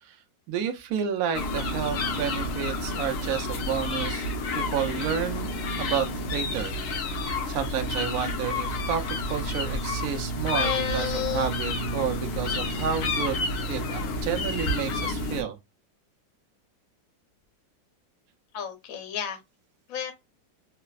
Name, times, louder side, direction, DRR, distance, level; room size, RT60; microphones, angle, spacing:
voice 1, 0.5-4.2 4.5-11.1 11.3-13.4 13.7-15.6, right 8 dB, 75° right, 0.8 m, -31 dB
sound 1, 1.3-15.4, left 1 dB, 80° left, 0.7 m, -30 dB
voice 2, 10.5-11.5 18.5-19.4 19.9-20.1, left 8 dB, 60° left, 1.0 m, -31 dB
3.2 x 2.0 x 2.3 m
omnidirectional pair, 2.0 m